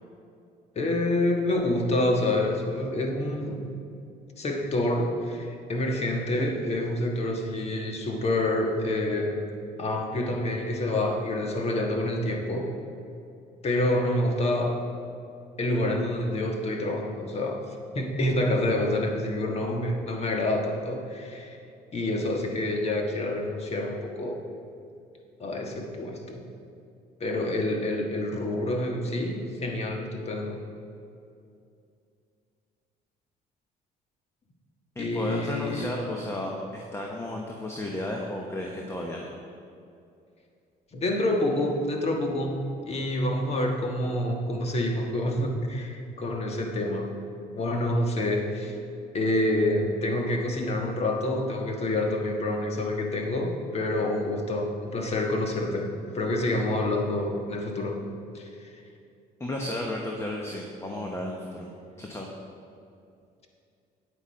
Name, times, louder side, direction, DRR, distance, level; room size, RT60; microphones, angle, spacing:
voice 1, 0.7-3.7 4.4-9.4 9.8-12.7 13.6-14.8 15.6-17.6 17.9-21.6 21.9-24.4 25.4-26.4 27.2-30.6 35.0-35.9 40.9-42.6 42.8-47.1 47.5-48.8 49.1-58.0 58.3-58.5, left 1 dB, 40° left, 2 dB, 1.5 m, -27 dB
voice 2, 34.9-39.3 59.4-61.7 62.0-62.3, left 1 dB, 15° left, 0 dB, 1.1 m, -33 dB
9.2 x 8.1 x 5.2 m, 2.5 s
cardioid pair, 110°, 17 cm